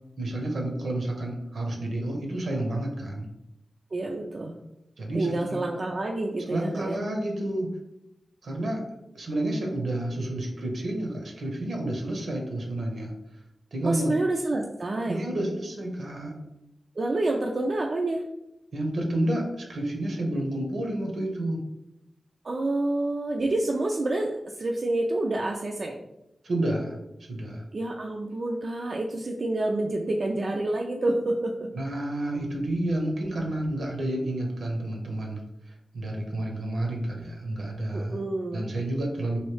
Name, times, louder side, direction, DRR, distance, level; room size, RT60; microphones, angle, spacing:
voice 1, 0.2-3.3 5.0-5.6 6.5-7.7 8.4-8.8 9.1-13.1 13.7-14.2 15.1-16.3 18.7-21.6 26.4-26.9 27.3-27.6 31.7-35.4 35.9-38.2 38.5-39.4, right 1 dB, 80° right, 1 dB, 0.8 m, -30 dB
voice 2, 3.9-4.5 5.1-7.0 13.8-15.2 17.0-18.2 22.4-26.0 27.7-31.5 37.9-38.7, right 2 dB, 55° right, 0 dB, 0.3 m, -28 dB
3.1 x 2.7 x 3.1 m, 0.88 s
cardioid pair, 60°, 0 cm